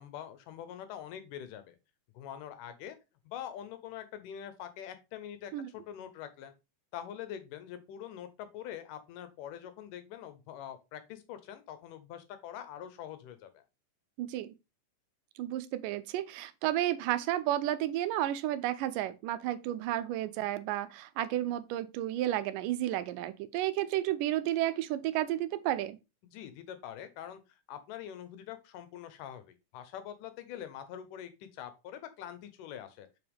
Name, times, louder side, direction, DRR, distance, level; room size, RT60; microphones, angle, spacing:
voice 1, 0.0-1.8 2.1-3.0 3.3-6.5 6.9-13.6 26.2-27.4 27.7-33.1, left 10 dB, 80° left, 2.5 m, -44 dB
voice 2, 14.2-14.5 15.4-26.0, right 13 dB, 90° right, 2.2 m, -32 dB
7.0 x 5.6 x 3.5 m
omnidirectional pair, 3.8 m